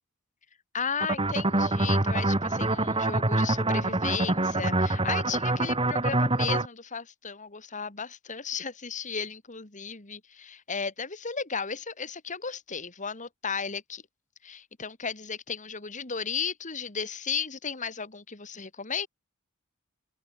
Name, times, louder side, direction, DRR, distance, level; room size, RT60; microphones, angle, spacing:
voice 1, 0.7-14.0 14.4-19.1, left 6 dB, 35° left, 2.5 m, -35 dB
sound 1, 1.0-6.7, right 2 dB, 25° right, 2.3 m, -25 dB
head